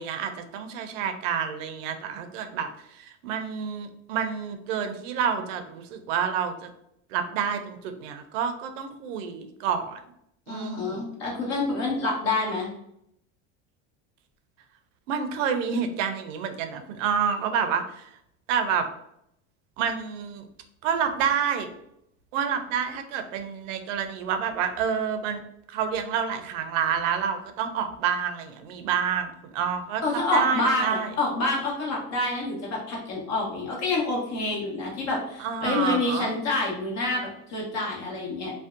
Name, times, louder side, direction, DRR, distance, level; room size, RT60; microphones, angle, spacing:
voice 1, 0.0-6.7 7.1-10.0 10.5-11.1 15.1-18.1 18.5-18.9 19.8-20.4 20.8-21.7 22.3-25.4 25.7-31.1 35.4-36.3, right 7 dB, 85° right, 8 dB, 0.5 m, -28 dB
voice 2, 10.5-12.7 30.0-38.5, left 2 dB, 45° left, -2 dB, 1.0 m, -27 dB
2.5 x 2.1 x 2.4 m, 0.75 s
supercardioid pair, 110°, 37 cm